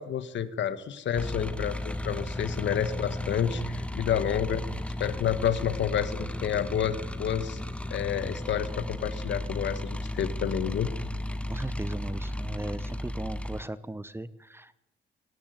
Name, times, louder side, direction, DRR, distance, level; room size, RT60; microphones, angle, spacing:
voice 1, 0.0-4.6 5.0-7.6 7.9-10.9, left 9 dB, 65° left, 13 dB, 1.7 m, -29 dB
sound 1, 1.1-13.6, left 1 dB, 5° left, 1.4 m, -34 dB
voice 2, 11.5-14.7, right 2 dB, 10° right, 15 dB, 1.2 m, -38 dB
18.5 x 17.5 x 9.3 m, 0.84 s
cardioid pair, 90°, 20 cm